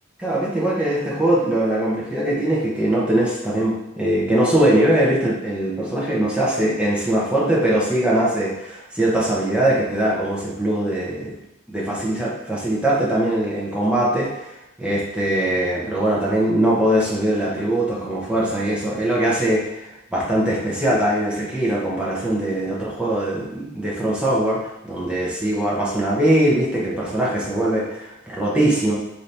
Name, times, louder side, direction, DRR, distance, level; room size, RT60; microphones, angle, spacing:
voice 1, 0.2-11.4 11.7-14.5 14.8-28.9, right 1 dB, 5° right, -6 dB, 0.8 m, -21 dB
4.0 x 2.8 x 3.3 m, 0.92 s
head